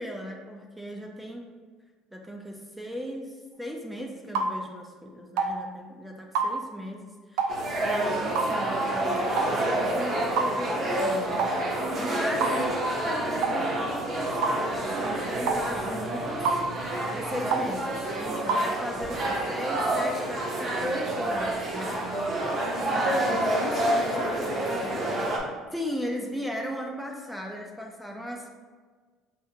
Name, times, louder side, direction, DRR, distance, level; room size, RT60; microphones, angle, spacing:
voice 1, 0.0-1.5 2.1-11.6 12.0-22.0 22.8-23.4 25.7-28.5, equal, 5° right, 1 dB, 0.3 m, -37 dB
sound 1, 4.4-4.5 5.4-5.5 6.4-6.5 7.4-7.6 8.4-8.5 9.4-9.6 10.4-10.5 11.4-11.6 12.4-12.6 13.4-13.6 14.4-14.6 15.5-15.6 16.5-16.6 17.5-17.7 18.5-18.7, right 4 dB, 85° right, 0.3 m, -26 dB
sound 2, 7.5-25.4, right 1 dB, 35° right, 0.7 m, -28 dB
voice 2, 22.6-23.2 23.5-25.1, left 4 dB, 55° left, 2 dB, 0.5 m, -38 dB
5.6 x 2.4 x 2.7 m, 1.5 s
cardioid pair, 155°, 0 cm